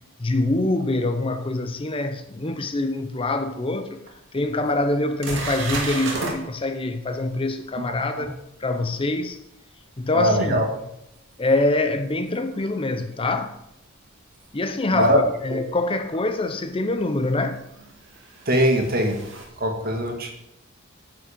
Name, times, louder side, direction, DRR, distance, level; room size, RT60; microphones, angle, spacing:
voice 1, 0.2-4.0 4.3-8.3 8.6-9.4 10.0-10.6 11.4-13.6 14.5-17.6, left 2 dB, 25° left, 0.6 m, -25 dB
sound 1, 4.1-4.2 4.7-4.8 5.2-6.4 11.5-11.6 14.3-14.4 16.1-16.2 17.6-19.5, right 3 dB, 60° right, 2.4 m, -32 dB
voice 2, 10.1-10.6 14.9-15.2 15.5-15.6 18.5-19.2 19.6-20.3, right 1 dB, 45° right, 1.9 m, -21 dB
10.0 x 7.7 x 5.1 m
head